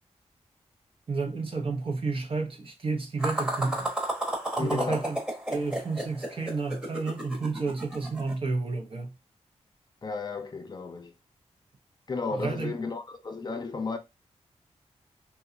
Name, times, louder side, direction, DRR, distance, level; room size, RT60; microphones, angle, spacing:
voice 1, 1.1-3.9 4.6-5.2 5.5-9.1 12.3-12.7, right 3 dB, 50° right, 0.7 m, -31 dB
sound 1, 3.2-8.3, right 1 dB, 10° right, 0.9 m, -32 dB
voice 2, 4.6-5.1 10.0-11.1 12.1-14.0, left 4 dB, 35° left, 0.4 m, -33 dB
2.7 x 2.3 x 2.4 m
cardioid pair, 80°, 12 cm